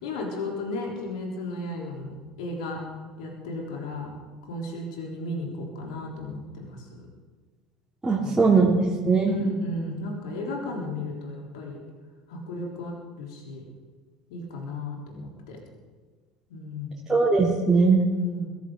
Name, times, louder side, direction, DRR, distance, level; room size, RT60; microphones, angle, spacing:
voice 1, 0.0-2.8 3.2-4.1 4.5-7.0 8.2-8.6 9.3-11.8 12.3-13.6 14.3-15.6 16.5-17.1 18.1-18.5, left 2 dB, 70° left, 0 dB, 3.7 m, -34 dB
voice 2, 8.0-9.3 17.1-18.0, right 4 dB, 10° right, -5 dB, 3.3 m, -20 dB
22.0 x 14.5 x 3.9 m, 1.5 s
figure-of-eight pair, 65°, 3 cm